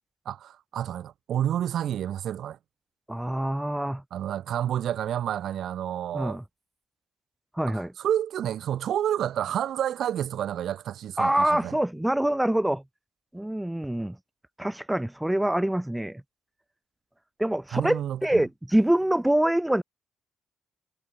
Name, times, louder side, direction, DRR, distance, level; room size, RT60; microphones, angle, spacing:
voice 1, 0.2-2.6 4.1-6.4 7.7-11.8 17.7-18.4, right 10 dB, 70° right, 1.6 m, -29 dB
voice 2, 3.1-4.0 6.1-6.4 7.5-7.9 11.2-12.8 13.3-14.2 14.6-16.2 17.4-19.8, right 1 dB, 5° right, 0.4 m, -25 dB
cardioid pair, 90°, 0 cm